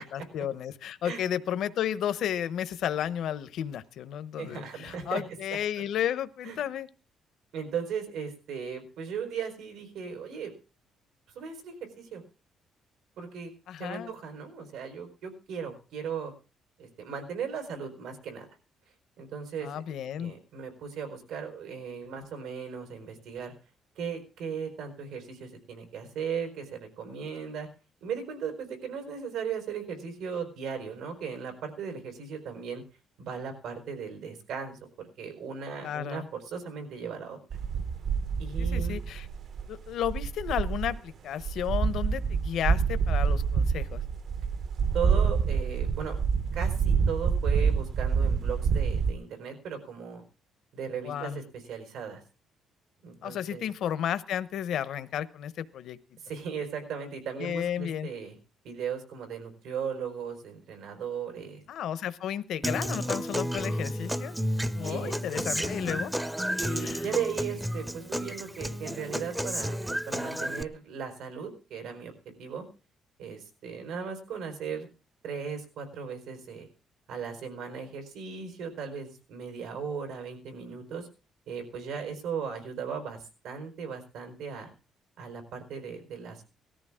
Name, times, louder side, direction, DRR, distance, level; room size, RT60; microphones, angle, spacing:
voice 1, 0.0-6.9 13.7-14.1 19.6-20.3 35.8-36.3 38.6-39.3 39.7-44.0 51.0-51.4 53.2-56.0 57.4-58.1 61.7-64.4 64.8-66.1 66.8-67.0, left 10 dB, 70° left, 13 dB, 0.9 m, -33 dB
voice 2, 4.4-5.2 6.4-6.6 7.5-10.5 11.3-12.2 13.2-13.5 13.8-16.3 16.8-18.5 19.2-19.8 20.2-23.5 24.0-27.7 28.0-32.8 33.2-34.8 35.2-37.4 38.4-39.0 44.9-46.2 46.5-50.2 50.7-52.2 53.0-53.7 56.2-58.4 58.6-61.6 64.8-65.1 65.5-65.7 66.6-69.8 70.1-72.1 72.4-72.6 73.2-74.9 75.2-76.7 77.1-81.1 81.5-84.7 85.2-86.4, right 6 dB, 90° right, 6 dB, 4.5 m, -37 dB
sound 1, 37.5-41.0 41.4-49.1, right 6 dB, 55° right, 0.9 m, -27 dB
Human voice / Acoustic guitar, 62.6-70.6, equal, 5° right, 0.6 m, -32 dB
18.5 x 13.5 x 3.7 m, 0.34 s
cardioid pair, 150°, 0 cm